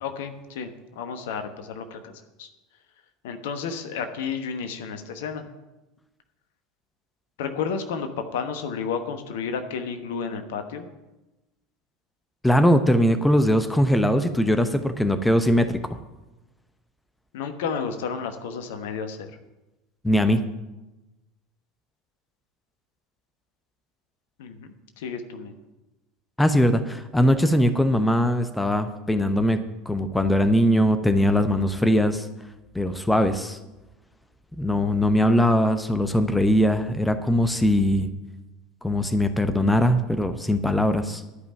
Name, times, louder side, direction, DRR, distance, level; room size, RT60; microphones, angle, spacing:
voice 1, 0.0-2.1 2.4-2.5 3.2-5.4 7.4-10.9 17.3-19.3 24.4-25.6, left 6 dB, 65° left, 7 dB, 1.1 m, -32 dB
voice 2, 12.4-15.8 20.0-20.4 26.4-32.3 32.7-33.6 34.6-38.1 38.8-41.2, equal, 5° left, 9 dB, 0.8 m, -21 dB
11.5 x 5.4 x 8.9 m, 1.0 s
figure-of-eight pair, 75°, 0 cm